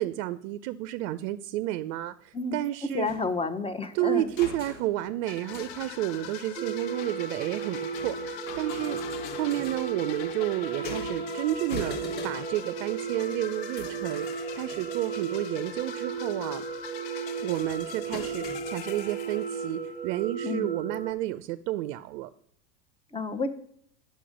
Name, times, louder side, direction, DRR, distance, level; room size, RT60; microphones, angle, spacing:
voice 1, 0.0-3.1 3.9-9.0 9.3-12.0 12.2-16.6 17.4-22.3, right 15 dB, 50° right, 13 dB, 0.6 m, -31 dB
voice 2, 2.8-4.3 20.4-20.7 23.1-23.5, left 3 dB, 10° left, 10 dB, 0.9 m, -30 dB
sound 1, 3.1-6.3 7.1-12.7 13.0-13.3 13.7-16.0 16.4-16.8 17.5-19.0 20.0-20.1 20.8-20.9 21.2-21.4, left 4 dB, 75° left, 2.2 m, -44 dB
sound 2, 5.3-20.0, left 12 dB, 45° left, 0.8 m, -43 dB
sound 3, 6.6-21.1, right 6 dB, 10° right, 0.6 m, -35 dB
9.9 x 6.5 x 5.2 m, 0.65 s
hypercardioid pair, 100°, 50 cm